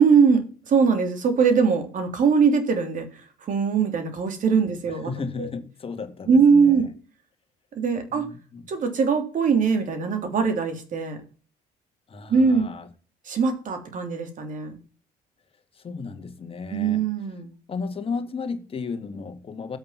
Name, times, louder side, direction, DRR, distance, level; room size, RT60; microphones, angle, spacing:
voice 1, 0.0-3.1 3.4-5.1 5.4-5.5 6.3-6.9 7.7-8.2 8.7-11.2 12.3-12.7 13.3-14.8 16.7-17.5, right 5 dB, 50° right, 3.1 m, -21 dB
voice 2, 4.9-6.9 8.1-8.6 12.1-12.9 15.7-17.0 17.7-19.8, left 4 dB, 35° left, 1.9 m, -34 dB
8.5 x 7.8 x 5.9 m
cardioid pair, 110°, 17 cm